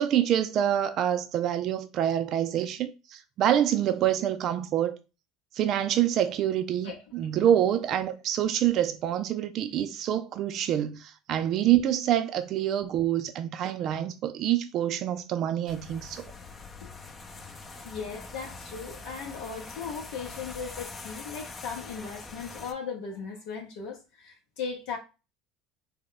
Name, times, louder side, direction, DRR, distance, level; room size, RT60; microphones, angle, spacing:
voice 1, 0.0-5.0 5.5-16.2, right 11 dB, 55° right, 0.4 m, -26 dB
winkel centrum parkeerplaats MS, 15.7-22.7, left 3 dB, 30° left, 0.6 m, -43 dB
voice 2, 17.8-25.0, left 5 dB, 70° left, 0.7 m, -37 dB
3.6 x 2.1 x 3.7 m
hypercardioid pair, 85°, 0 cm